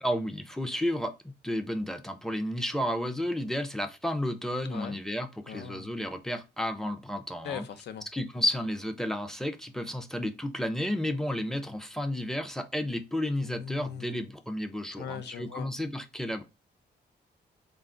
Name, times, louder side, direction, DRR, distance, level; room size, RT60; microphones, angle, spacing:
voice 1, 0.0-7.6 8.1-16.4, left 1 dB, 5° left, 0.4 m, -32 dB
voice 2, 4.7-5.0 5.5-5.9 7.4-8.1 13.4-14.1 15.0-15.7, left 8 dB, 80° left, 0.5 m, -40 dB
4.0 x 2.3 x 3.7 m
wide cardioid pair, 130°, 17 cm